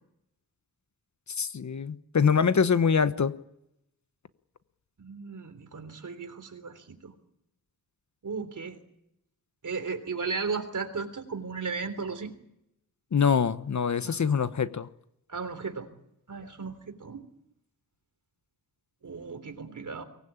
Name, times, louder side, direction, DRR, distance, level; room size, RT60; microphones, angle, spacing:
voice 1, 1.4-3.3 13.1-14.9, left 6 dB, 50° left, 1.1 m, -24 dB
voice 2, 5.0-7.1 8.2-8.8 9.6-12.3 14.0-14.2 15.3-15.9 16.3-17.3 19.0-20.0, right 4 dB, 55° right, 3.5 m, -35 dB
24.0 x 19.5 x 8.8 m
wide cardioid pair, 125°, 36 cm